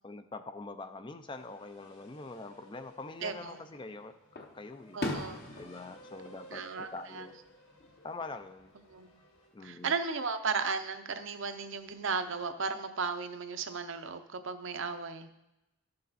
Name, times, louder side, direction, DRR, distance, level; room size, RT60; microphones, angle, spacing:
voice 1, 0.0-5.0 5.6-7.4 8.0-8.7 9.5-9.9, left 3 dB, 20° left, 9 dB, 0.4 m, -44 dB
sound 1, 1.3-9.5, equal, 65° left, 2.0 m, -57 dB
Fireworks, 3.2-3.9 4.4-7.5 7.8-8.4 9.9-10.7, left 2 dB, 45° left, 1.0 m, -41 dB
voice 2, 3.2-3.6 4.9-5.5 6.5-7.3 8.7-9.1 9.6-15.3, right 5 dB, 55° right, 9 dB, 0.7 m, -35 dB
13.0 x 6.7 x 4.1 m, 0.92 s
head